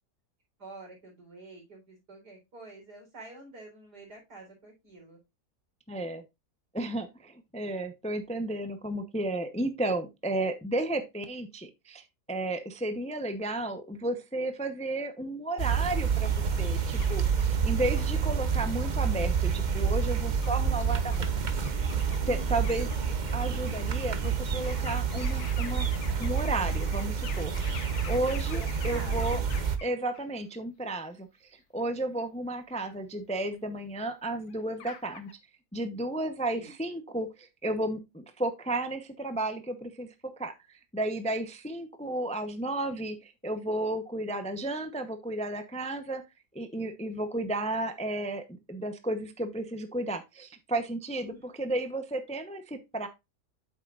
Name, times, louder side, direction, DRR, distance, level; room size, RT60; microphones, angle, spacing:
voice 1, 0.6-5.2 22.2-22.6 28.5-29.5 36.5-36.7 51.2-51.5, right 2 dB, 85° right, 0 dB, 4.6 m, -47 dB
voice 2, 5.9-6.2 6.7-21.3 21.6-21.8 22.3-25.9 26.2-27.6 28.1-29.4 29.8-35.3 35.7-40.1 40.4-46.2 46.5-53.1, right 1 dB, 5° left, 8 dB, 0.5 m, -33 dB
sound 1, 15.6-29.8, right 6 dB, 35° right, 0.8 m, -28 dB
sound 2, 17.0-17.5 18.0-18.1 19.5-19.6 20.4-20.5 20.9-21.3 21.6-24.3 24.6-30.3 32.7-32.8 33.3-34.0 34.4-35.3, left 7 dB, 75° left, 1.5 m, -46 dB
8.6 x 7.5 x 2.5 m, 0.22 s
omnidirectional pair, 1.7 m